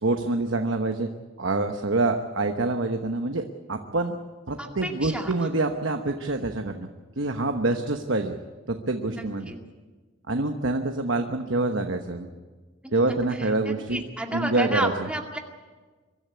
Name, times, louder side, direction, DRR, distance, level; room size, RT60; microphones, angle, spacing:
voice 1, 0.0-1.1 1.4-4.2 4.5-6.9 7.2-8.3 8.7-9.5 10.3-12.3 12.9-14.0 14.3-15.1, right 2 dB, 65° right, 5 dB, 1.1 m, -26 dB
voice 2, 4.6-5.3 9.1-9.6 12.8-15.4, right 1 dB, 5° right, 1 dB, 2.1 m, -32 dB
24.0 x 12.5 x 9.5 m, 1.4 s
head